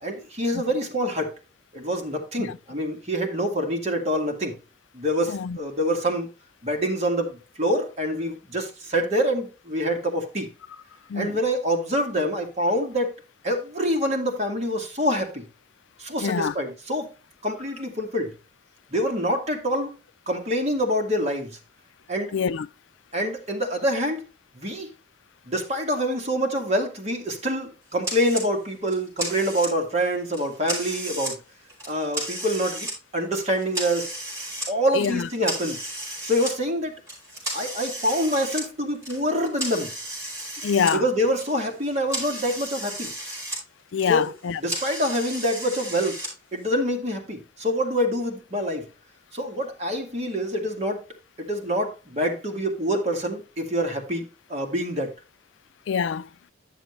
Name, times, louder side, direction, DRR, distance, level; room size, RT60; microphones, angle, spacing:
voice 1, 0.0-1.3 1.7-4.5 4.9-6.3 6.6-10.5 11.1-13.1 13.4-15.4 16.0-17.1 17.4-18.3 18.9-19.9 20.3-21.6 22.1-22.3 23.1-24.2 24.5-24.9 25.5-31.4 31.9-32.9 33.1-34.1 34.7-35.8 36.2-36.9 37.5-39.9 40.9-43.1 44.1-44.3 44.6-46.2 46.5-48.8 49.3-51.0 51.4-54.2 54.5-55.1, equal, 35° right, 2.1 m, -26 dB
voice 2, 5.3-5.6 11.1-11.3 16.2-16.5 22.3-22.7 34.9-35.3 40.6-41.1 43.9-44.6 55.9-56.3, left 6 dB, 80° left, 0.4 m, -25 dB
sound 1, 28.0-28.5 28.9-29.9 30.3-31.3 31.7-32.9 33.3-34.7 35.0-36.5 37.1-41.0 41.2-43.6 43.9-46.3, right 1 dB, 15° right, 5.8 m, -34 dB
11.0 x 7.1 x 3.2 m
head